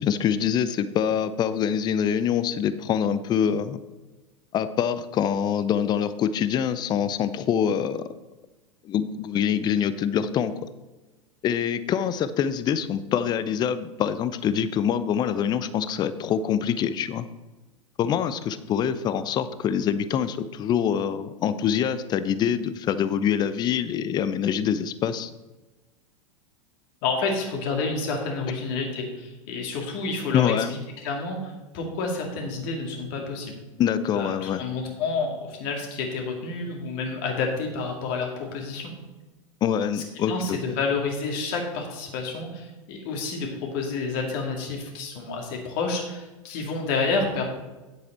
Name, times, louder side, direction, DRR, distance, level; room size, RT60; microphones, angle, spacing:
voice 1, 0.0-3.8 4.5-8.0 8.8-10.5 11.4-17.2 18.0-25.3 30.3-30.7 33.8-34.6 39.6-40.6, left 8 dB, 25° left, 14 dB, 0.6 m, -25 dB
voice 2, 27.0-33.6 34.1-38.9 39.9-47.4, left 4 dB, 45° left, 1 dB, 2.4 m, -29 dB
9.7 x 8.1 x 4.4 m, 1.1 s
figure-of-eight pair, 90°, 17 cm